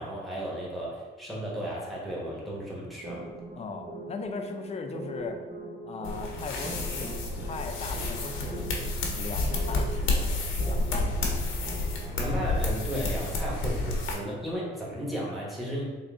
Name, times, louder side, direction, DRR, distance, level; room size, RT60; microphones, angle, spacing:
voice 1, 0.0-3.3 12.2-15.8, equal, ahead, -6 dB, 1.1 m, -34 dB
sound 1, 3.0-12.3, right 2 dB, 45° right, 0.8 m, -42 dB
voice 2, 3.5-5.4 5.8-8.8 9.1-11.8, left 4 dB, 35° left, 5 dB, 0.4 m, -39 dB
sound 2, 6.0-14.1, left 2 dB, 85° left, 0.7 m, -30 dB
3.6 x 2.2 x 3.5 m, 1.3 s
cardioid pair, 90°, 20 cm